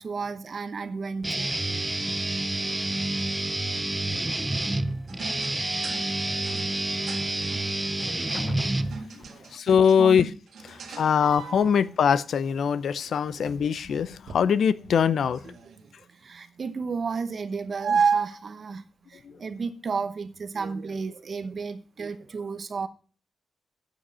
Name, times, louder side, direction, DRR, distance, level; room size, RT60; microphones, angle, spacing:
voice 1, 0.0-1.5 8.8-8.9 9.3-9.5 10.0-10.3 13.4-13.5 15.5-15.6 15.8-18.8 19.1-22.9, right 5 dB, 35° right, 0.8 m, -33 dB
Guitar, 1.2-9.3, right 2 dB, 10° right, 0.5 m, -28 dB
sound 1, 5.1-11.9 12.9-16.8 17.8-18.5 19.3-19.6 19.9-20.5, right 6 dB, 60° right, 1.7 m, -33 dB
voice 2, 8.3-8.7 9.5-10.3 10.7-15.5, left 7 dB, 60° left, 0.5 m, -23 dB
8.8 x 7.7 x 5.4 m
wide cardioid pair, 175°, 0 cm